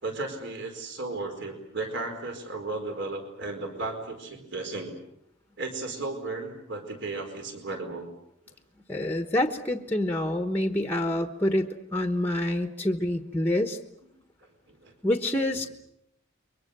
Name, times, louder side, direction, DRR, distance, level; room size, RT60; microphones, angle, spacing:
voice 1, 0.0-4.9 5.6-8.1 12.4-12.5 14.7-14.9, right 3 dB, 55° right, 5 dB, 4.7 m, -35 dB
voice 2, 8.9-13.8 15.0-15.7, left 1 dB, 10° left, 7 dB, 1.1 m, -27 dB
29.5 x 23.5 x 6.8 m, 0.80 s
head